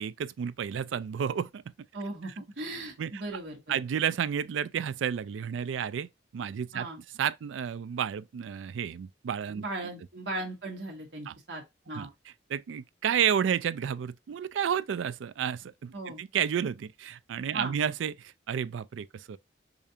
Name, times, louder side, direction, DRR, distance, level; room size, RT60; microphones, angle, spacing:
voice 1, 0.0-1.6 2.2-2.3 3.0-3.2 3.7-6.9 7.2-9.7 11.3-11.4 11.9-19.4, right 8 dB, 85° right, 0.3 m, -31 dB
voice 2, 1.9-2.3 2.6-3.6 6.7-7.0 9.6-12.1 15.9-16.2 17.5-17.7, right 2 dB, 70° right, 1.3 m, -37 dB
5.0 x 2.4 x 2.7 m
head